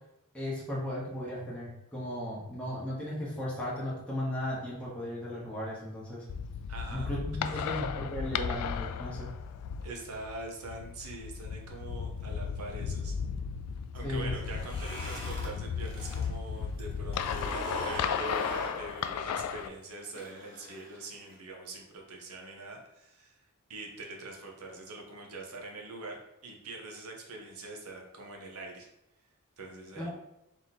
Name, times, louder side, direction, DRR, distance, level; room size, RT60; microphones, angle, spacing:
voice 1, 0.3-6.2 6.9-9.3 14.0-14.4 30.0-30.1, left 1 dB, 5° left, -7 dB, 1.1 m, -36 dB
sound 1, 6.3-19.7, left 6 dB, 85° left, 0.3 m, -35 dB
voice 2, 6.7-7.1 7.4-7.7 9.8-13.1 13.9-28.9 29.6-30.1, right 2 dB, 70° right, 1 dB, 1.0 m, -43 dB
sound 2, 14.3-16.3 16.6-21.3, equal, 25° left, 1.4 m, -41 dB
3.7 x 2.9 x 4.1 m, 0.87 s
head